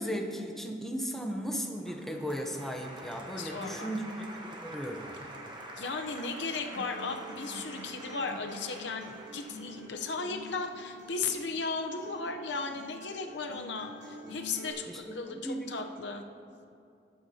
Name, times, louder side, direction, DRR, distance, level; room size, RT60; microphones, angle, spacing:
voice 1, 0.0-4.3 4.6-5.1 14.9-15.0 15.3-15.7, equal, ahead, 2 dB, 0.8 m, -36 dB
Applause, 1.8-10.9, right 1 dB, 25° right, 1.1 m, -47 dB
voice 2, 3.4-4.0 5.8-16.2, left 4 dB, 70° left, 4 dB, 0.7 m, -36 dB
Acoustic guitar, 6.7-14.7, right 1 dB, 85° right, 2.6 m, -47 dB
19.0 x 8.4 x 2.8 m, 2.5 s
head